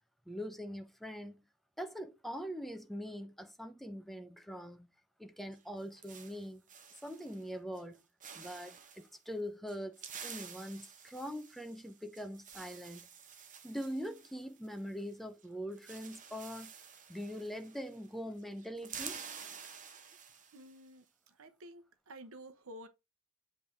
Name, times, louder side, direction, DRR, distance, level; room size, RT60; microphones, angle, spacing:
voice 1, 0.3-1.4 1.8-4.9 5.2-6.6 7.0-8.0 8.3-13.1 13.6-16.7 17.1-19.2, equal, ahead, 0.7 m, -43 dB
sound 1, 5.5-7.5 7.8-8.0 8.2-9.1 9.7-15.1 15.4-15.5 15.7-18.1 18.4-20.8, right 7 dB, 35° right, 0.9 m, -50 dB
voice 2, 20.5-22.9, right 1 dB, 65° right, 0.9 m, -52 dB
7.8 x 3.5 x 4.5 m
head